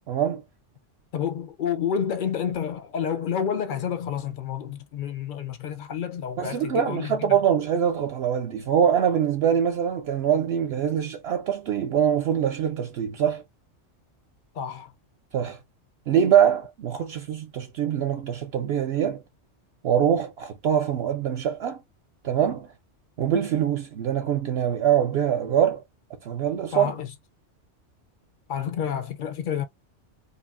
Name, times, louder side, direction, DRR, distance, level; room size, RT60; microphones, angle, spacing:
voice 1, 0.1-0.4 6.4-13.4 15.3-15.6 16.1-19.2 19.8-21.8 22.2-22.7 23.2-25.8 26.2-26.9, right 9 dB, 65° right, 0.8 m, -23 dB
voice 2, 1.1-7.4 14.5-14.9 26.7-27.1 28.5-29.6, left 8 dB, 60° left, 0.5 m, -29 dB
2.9 x 2.5 x 2.4 m
omnidirectional pair, 1.2 m